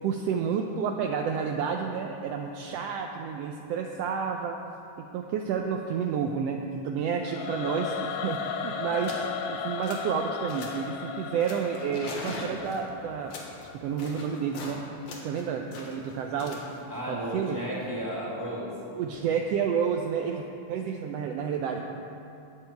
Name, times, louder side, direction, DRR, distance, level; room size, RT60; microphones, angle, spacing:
voice 1, 0.0-4.6 5.0-9.1 9.5-13.3 13.7-14.8 15.2-16.6 17.1-17.6 19.0-21.8, right 6 dB, 75° right, 2 dB, 1.5 m, -30 dB
Singing / Musical instrument, 7.2-14.3, left 6 dB, 80° left, 2.0 m, -36 dB
sound 1, 8.2-8.5 9.0-9.3 9.6-10.2 10.5-10.9 11.4-14.8 15.1-18.1, left 2 dB, 65° left, 2.5 m, -42 dB
voice 2, 16.9-18.8 19.1-19.2, equal, 5° right, -6 dB, 1.8 m, -34 dB
19.5 x 7.5 x 4.5 m, 2.8 s
omnidirectional pair, 3.3 m